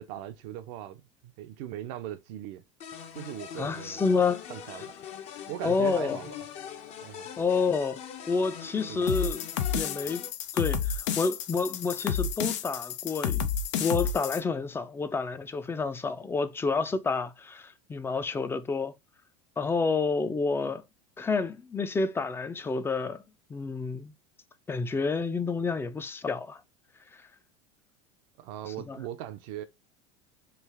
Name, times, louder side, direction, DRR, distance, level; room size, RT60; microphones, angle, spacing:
voice 1, 0.0-2.6 3.1-4.0 4.5-4.9 5.5-6.3 7.0-7.3 8.9-9.1 28.4-29.6, right 12 dB, 65° right, 0.6 m, -39 dB
sound 1, 2.8-10.3, left 8 dB, 50° left, 0.7 m, -42 dB
voice 2, 3.6-4.4 5.6-6.2 7.4-8.0 8.3-9.5 9.7-10.2 10.5-13.5 13.8-18.9 19.6-20.8 21.2-23.2 23.5-24.1 24.7-26.6 28.9-29.0, left 4 dB, 15° left, 0.4 m, -29 dB
sound 2, 9.1-14.4, left 7 dB, 85° left, 0.5 m, -30 dB
3.3 x 2.4 x 3.4 m
supercardioid pair, 110°, 15 cm